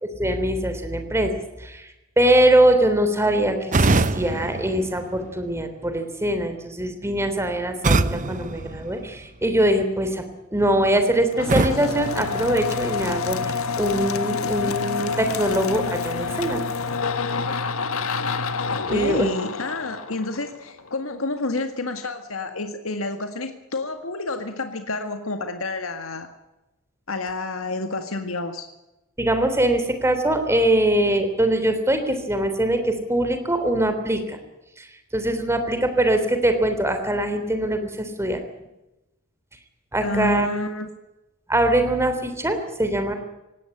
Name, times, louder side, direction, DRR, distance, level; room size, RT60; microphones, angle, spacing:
voice 1, 0.0-1.9 2.2-10.2 10.5-16.6 18.9-19.3 29.2-34.4 34.8-34.9 35.1-38.4 39.9-40.5 41.5-43.1, right 1 dB, 15° right, 8 dB, 3.4 m, -22 dB
sound 1, 3.7-5.7 7.8-9.5 11.5-13.1, right 2 dB, 40° right, 0.9 m, -25 dB
sound 2, 11.3-20.9, left 4 dB, 90° left, 1.6 m, -28 dB
voice 2, 18.9-26.3 27.1-28.7 40.0-40.9, left 2 dB, 70° left, 7 dB, 1.9 m, -29 dB
18.0 x 18.0 x 9.8 m, 0.96 s
head